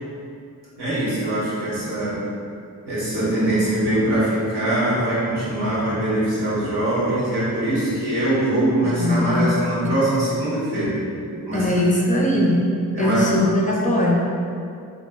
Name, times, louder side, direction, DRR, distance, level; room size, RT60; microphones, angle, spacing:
voice 1, 0.8-2.2 2.9-11.0 11.5-11.8 12.3-12.4 12.9-13.5, right 1 dB, 85° right, -10 dB, 1.0 m, -22 dB
voice 2, 8.8-9.9 11.5-12.7 13.0-14.2, left 1 dB, 20° left, -2 dB, 0.4 m, -20 dB
2.5 x 2.0 x 3.3 m, 2.4 s
cardioid pair, 40°, 38 cm